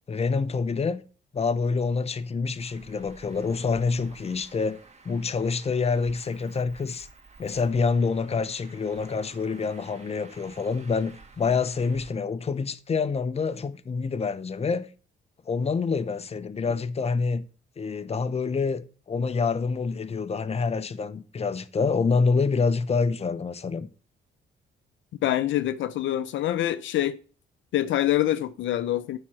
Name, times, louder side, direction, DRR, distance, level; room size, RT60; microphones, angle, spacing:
voice 1, 0.1-1.0 1.3-4.8 5.0-7.1 7.4-14.9 15.5-17.5 17.8-23.9, left 4 dB, 30° left, 0.8 m, -27 dB
Traffic noise roadway noise, 2.6-12.1, right 3 dB, 35° right, 2.3 m, -51 dB
voice 2, 25.2-27.2 27.7-29.2, left 13 dB, 75° left, 0.6 m, -25 dB
9.4 x 4.3 x 6.1 m
cardioid pair, 90°, 20 cm